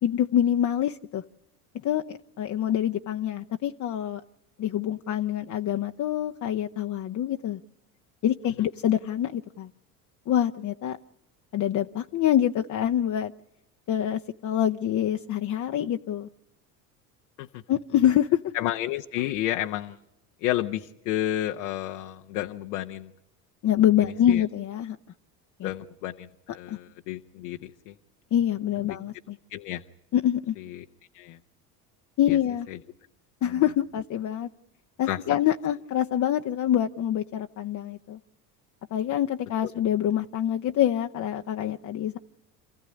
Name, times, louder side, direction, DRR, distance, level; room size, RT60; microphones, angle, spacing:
voice 1, 0.0-1.2 1.8-4.2 4.6-7.6 8.2-9.7 10.3-11.0 11.5-13.3 13.9-16.3 17.7-18.4 23.6-25.0 25.6-25.7 26.7-26.8 28.3-29.4 30.1-30.5 32.2-32.7 33.4-34.5 35.0-38.2 38.9-42.2, left 11 dB, 40° left, 4 dB, 0.8 m, -25 dB
voice 2, 18.5-20.0 20.4-23.1 24.0-24.4 25.6-27.9 28.9-29.0 29.5-29.8 30.6-30.8 31.1-31.4 32.3-32.4 33.4-33.6 35.1-35.2, left 13 dB, 75° left, 5 dB, 1.0 m, -31 dB
27.5 x 15.0 x 9.8 m, 0.88 s
hypercardioid pair, 75°, 46 cm